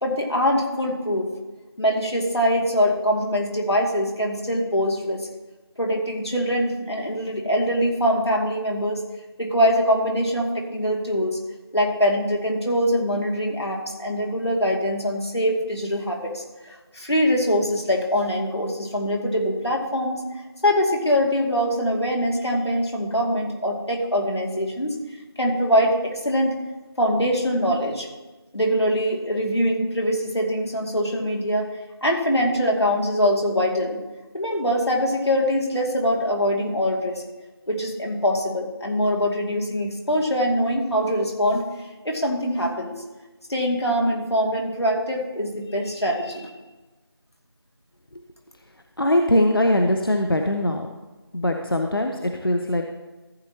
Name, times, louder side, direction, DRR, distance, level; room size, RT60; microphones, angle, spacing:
voice 1, 0.0-1.2 1.8-5.3 5.8-9.0 9.4-11.4 11.7-20.2 20.6-25.0 25.4-26.5 27.0-28.1 28.5-31.7 32.0-34.0 34.3-37.2 37.7-41.6 42.0-42.9 43.5-46.5, equal, 90° left, -1 dB, 2.5 m, -23 dB
voice 2, 49.0-50.9 51.3-52.8, left 1 dB, 60° left, 4 dB, 0.9 m, -21 dB
14.5 x 7.8 x 2.9 m, 1.2 s
figure-of-eight pair, 175°, 13 cm